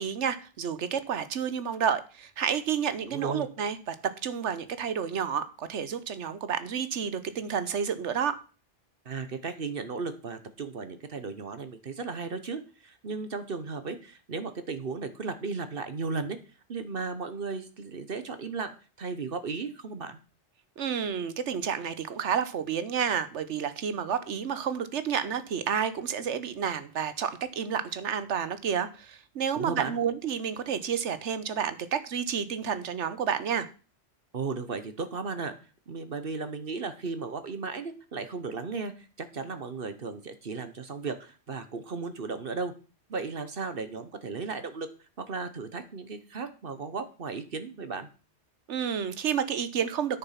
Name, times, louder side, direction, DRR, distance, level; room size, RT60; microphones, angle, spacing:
voice 1, 0.0-8.4 20.8-33.7 48.7-50.2, right 7 dB, 85° right, 13 dB, 1.2 m, -30 dB
voice 2, 3.1-3.5 9.0-16.4 16.7-20.2 29.5-30.0 34.3-35.5 35.9-42.7 43.1-44.9 45.2-48.1, right 4 dB, 55° right, 10 dB, 1.2 m, -35 dB
9.5 x 6.9 x 5.8 m, 0.35 s
omnidirectional pair, 1.2 m